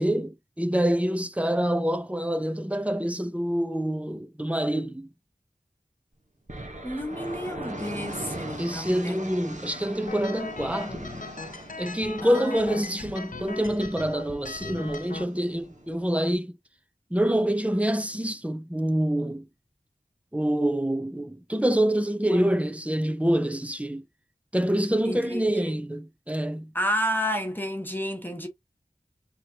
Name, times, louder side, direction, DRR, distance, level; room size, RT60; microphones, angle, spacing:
voice 1, 0.0-5.1 8.6-11.1 11.8-16.6 17.1-19.5 20.3-24.0 24.5-26.7, right 1 dB, 10° right, 0.7 m, -26 dB
sound 1, 6.5-16.3, right 1 dB, 55° right, 1.2 m, -41 dB
voice 2, 6.8-9.2 12.2-12.6 22.3-22.5 25.0-25.7 26.7-28.5, equal, 15° left, 1.2 m, -31 dB
sound 2, 10.1-15.2, left 3 dB, 60° left, 0.6 m, -39 dB
4.2 x 3.1 x 2.8 m
wide cardioid pair, 45°, 15 cm